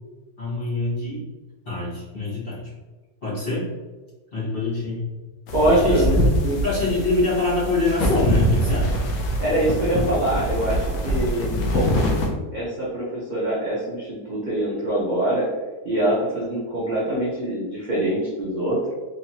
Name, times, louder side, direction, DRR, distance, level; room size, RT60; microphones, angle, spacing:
voice 1, 0.4-1.3 1.6-2.7 3.2-3.7 4.3-5.1 5.7-6.2 6.6-9.1, left 2 dB, 35° left, -9 dB, 1.4 m, -24 dB
sound 1, 5.5-12.3, equal, 80° left, 1.2 m, -23 dB
voice 2, 5.5-6.6 9.4-12.2 12.5-15.5 15.8-18.8, right 1 dB, 40° right, -8 dB, 0.7 m, -24 dB
3.7 x 2.9 x 2.8 m, 1.2 s
omnidirectional pair, 1.9 m